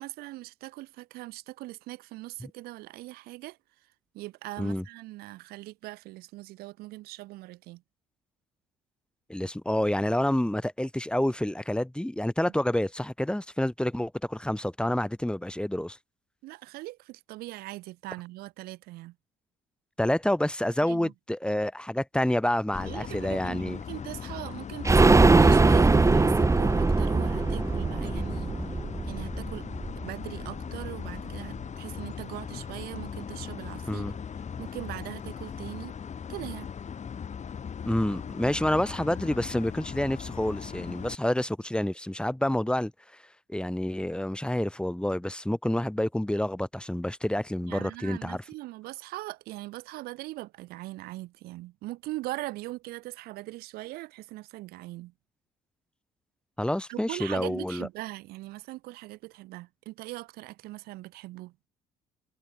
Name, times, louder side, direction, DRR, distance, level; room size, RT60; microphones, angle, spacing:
voice 1, 0.0-3.6 4.1-7.8 16.4-19.1 20.8-21.1 22.8-28.5 29.0-29.7 30.0-34.1 34.6-35.9 36.3-36.7 47.6-55.1 56.9-61.7, right 18 dB, 75° right, 4.7 m, -40 dB
voice 2, 9.3-16.0 20.0-23.8 33.9-34.2 37.8-42.9 43.5-48.4 56.6-57.9, left 1 dB, 5° left, 3.3 m, -28 dB
sound 1, 22.7-41.1, left 7 dB, 45° left, 6.1 m, -39 dB
sound 2, 24.8-30.5 30.8-30.9 31.2-31.3, right 3 dB, 20° right, 1.0 m, -21 dB
hypercardioid pair, 55°, 16 cm